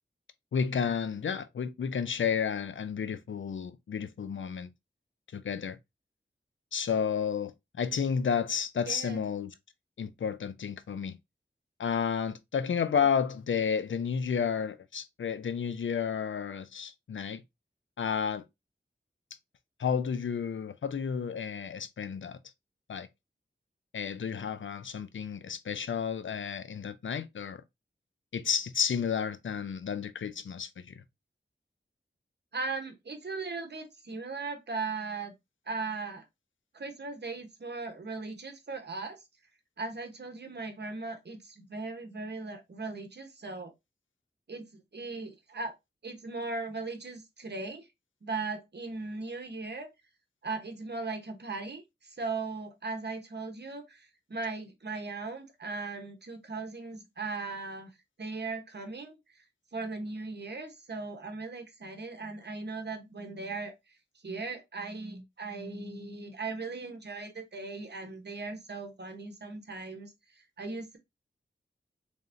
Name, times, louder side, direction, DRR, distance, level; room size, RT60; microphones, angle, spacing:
voice 1, 0.5-4.7 5.3-5.8 6.7-9.5 10.0-11.2 11.8-17.4 18.0-18.4 19.8-22.4 22.9-23.1 23.9-27.6 28.3-30.9, left 7 dB, 80° left, 0.5 m, -31 dB
voice 2, 8.9-9.2 13.0-13.1 32.5-35.3 35.7-36.2 36.7-39.2 39.8-43.7 44.5-45.7 46.0-47.9 48.2-49.9 50.4-57.9 58.2-59.4 59.7-63.7 64.2-70.1 70.6-71.0, right 3 dB, 60° right, 1.0 m, -38 dB
3.8 x 3.5 x 2.6 m
wide cardioid pair, 65°, 20 cm